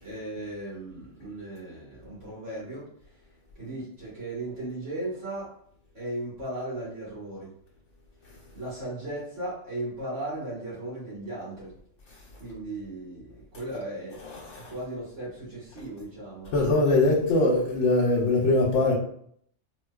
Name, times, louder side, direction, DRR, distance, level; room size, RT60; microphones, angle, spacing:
voice 1, 0.0-2.8 3.6-5.5 5.9-7.5 8.5-11.7 12.4-16.5, right 1 dB, 70° right, -8 dB, 1.9 m, -36 dB
voice 2, 14.2-14.7 16.5-18.9, left 2 dB, 80° left, -3 dB, 1.0 m, -22 dB
4.1 x 2.3 x 2.3 m, 0.64 s
omnidirectional pair, 1.3 m